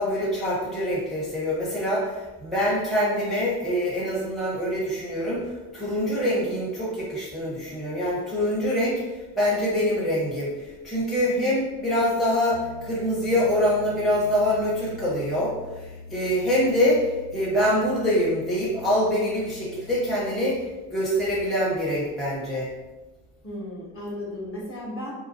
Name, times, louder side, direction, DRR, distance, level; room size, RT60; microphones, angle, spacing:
voice 1, 0.0-9.0 9.4-20.6 20.9-22.7, equal, ahead, -8 dB, 0.8 m, -25 dB
Piano, 12.5-20.6, left 4 dB, 75° left, 1.3 m, -44 dB
voice 2, 23.4-25.1, left 1 dB, 30° left, -5 dB, 1.1 m, -35 dB
2.4 x 2.3 x 2.6 m, 1.1 s
hypercardioid pair, 65°, 44 cm